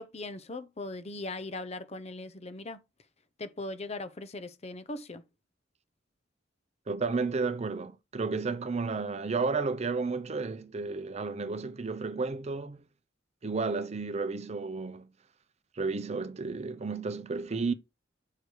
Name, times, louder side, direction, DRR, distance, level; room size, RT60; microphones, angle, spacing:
voice 1, 0.0-2.8 3.4-5.2, left 2 dB, 35° left, 0.7 m, -39 dB
voice 2, 6.9-12.9 13.4-15.1 15.7-17.7, right 4 dB, 35° right, 0.6 m, -32 dB
6.7 x 4.9 x 4.6 m
head